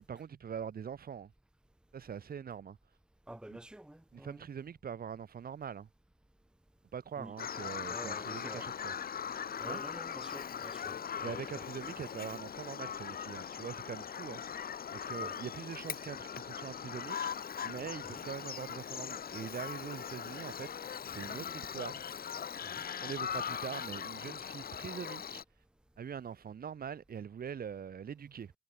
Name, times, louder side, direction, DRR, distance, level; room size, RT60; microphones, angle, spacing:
voice 1, 0.0-1.3 1.9-2.8 3.5-3.6 4.1-5.9 6.9-8.9 9.6-9.8 11.2-14.4 14.9-22.2 23.0-25.4 26.0-28.5, right 7 dB, 60° right, 2.4 m, -43 dB
voice 2, 3.3-4.4 7.2-7.3 7.9-8.7 9.6-11.4 15.2-15.3 18.1-18.2 22.6-22.9, right 1 dB, 5° right, 1.2 m, -49 dB
Bird vocalization bird call bird song, 7.4-25.4, left 8 dB, 60° left, 1.6 m, -40 dB
cardioid pair, 85°, 17 cm